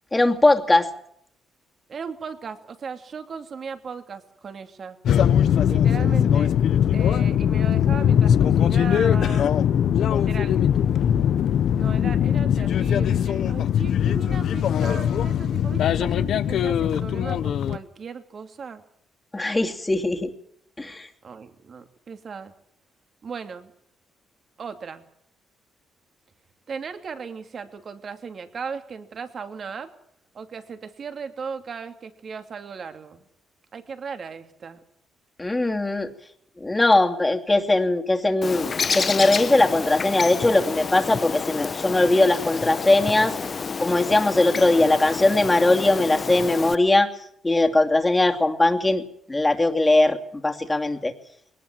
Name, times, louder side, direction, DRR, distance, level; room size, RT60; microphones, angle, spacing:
voice 1, 0.1-0.9 19.3-20.3 20.8-21.1 35.4-36.1 36.6-43.3 43.8-47.1 47.4-49.0 49.3-50.2 50.4-51.1, left 2 dB, 15° left, 4 dB, 2.8 m, -20 dB
voice 2, 1.9-5.0 5.6-6.6 6.9-9.5 10.1-10.6 11.7-18.8 21.2-22.5 23.2-23.7 24.6-25.0 26.7-29.9 30.3-33.2 33.7-34.8, right 5 dB, 50° right, 8 dB, 2.7 m, -37 dB
sound 1, 5.1-17.8, left 9 dB, 70° left, 1.0 m, -21 dB
Bird, 38.4-46.8, left 5 dB, 40° left, 1.0 m, -29 dB
21.0 x 19.0 x 7.6 m, 0.70 s
cardioid pair, 90°, 0 cm